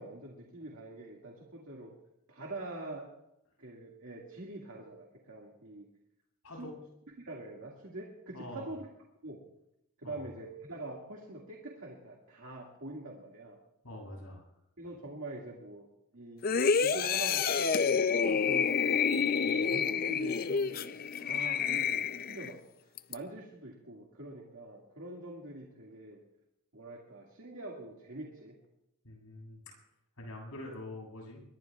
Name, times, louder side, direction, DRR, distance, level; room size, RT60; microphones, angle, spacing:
voice 1, 0.0-1.9 2.3-3.1 3.6-5.9 6.6-6.7 7.2-8.9 9.2-9.4 10.0-13.6 14.8-15.9 16.1-16.5 16.8-19.0 19.5-20.9 21.2-26.2 26.7-28.6, right 2 dB, 65° right, -1 dB, 2.1 m, -44 dB
voice 2, 6.4-6.8 8.3-8.7 10.0-10.3 13.8-14.5 29.0-29.6 30.2-31.4, left 1 dB, 80° left, 0 dB, 7.8 m, -45 dB
sound 1, 16.4-22.5 23.0-23.1, left 6 dB, 40° left, 0.5 m, -28 dB
24.0 x 21.0 x 2.4 m, 0.83 s
head